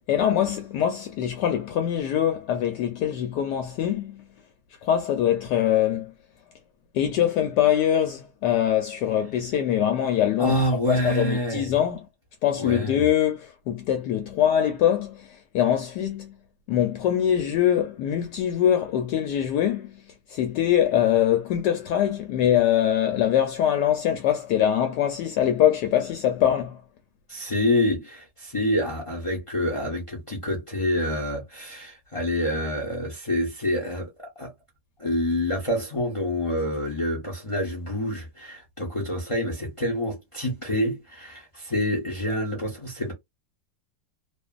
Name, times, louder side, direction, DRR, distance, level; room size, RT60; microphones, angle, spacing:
voice 1, 0.1-4.2 4.8-6.1 6.9-10.6 10.9-12.0 12.4-16.4 16.7-20.0 20.3-26.8, left 10 dB, 75° left, 1.1 m, -23 dB
voice 2, 10.4-11.7 12.6-13.1 27.3-34.1 34.4-34.5 35.0-43.1, left 1 dB, 35° left, 0.5 m, -27 dB
2.5 x 2.5 x 2.3 m
omnidirectional pair, 1.9 m